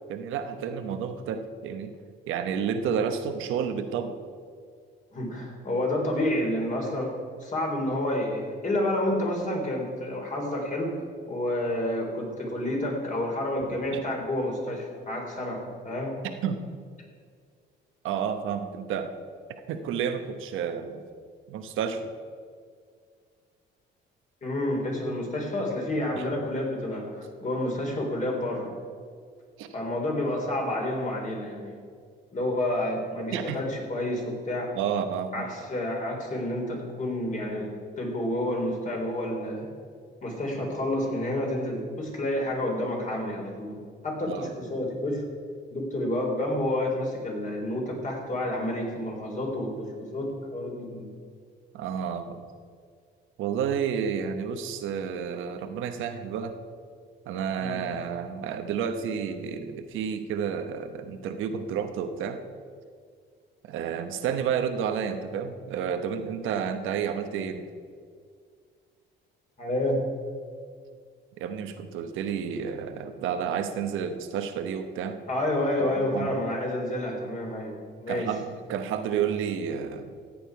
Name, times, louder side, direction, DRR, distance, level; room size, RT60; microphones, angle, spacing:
voice 1, 0.1-1.9 2.3-4.2 13.9-14.0 16.4-16.6 18.0-19.2 19.7-21.0 21.5-22.1 26.1-26.2 29.6-29.7 33.3-33.6 34.7-35.5 44.3-44.5 51.7-52.4 53.4-56.5 57.3-62.4 63.7-67.7 71.4-75.2 76.0-76.4 78.1-80.2, right 7 dB, 90° right, 8 dB, 1.0 m, -30 dB
voice 2, 5.1-7.1 7.4-10.9 11.3-16.1 24.4-28.7 29.7-31.8 32.3-34.7 35.3-39.7 40.2-43.8 44.0-45.2 45.7-51.1 57.6-57.8 69.6-70.0 75.3-77.7 78.0-78.3, left 1 dB, 40° left, -1 dB, 3.7 m, -29 dB
14.5 x 8.9 x 4.8 m, 2.1 s
cardioid pair, 90°, 20 cm